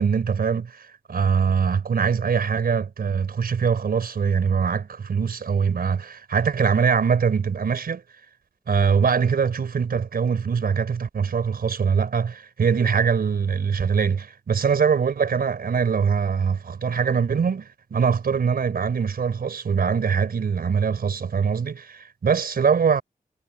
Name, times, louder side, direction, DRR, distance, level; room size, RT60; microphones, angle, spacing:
voice 1, 0.0-8.0 8.7-23.0, right 6 dB, 85° right, 4.8 m, -23 dB
wide cardioid pair, 135°, 15 cm